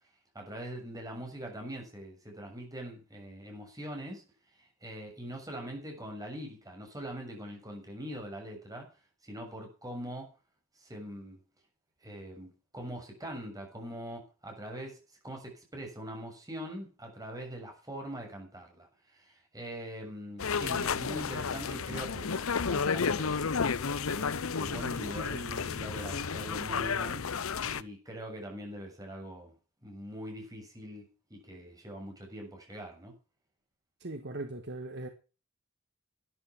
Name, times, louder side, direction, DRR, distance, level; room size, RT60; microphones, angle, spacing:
voice 1, 0.4-4.2 4.8-8.9 9.2-10.3 10.8-11.4 12.0-15.0 15.2-18.9 19.1-23.4 24.1-27.2 27.7-29.5 29.8-33.1, equal, 15° right, 6.8 m, -42 dB
sound 1, 20.4-27.8, left 5 dB, 75° left, 0.8 m, -32 dB
voice 2, 34.0-35.1, right 2 dB, 55° right, 1.6 m, -39 dB
13.0 x 11.0 x 5.9 m
head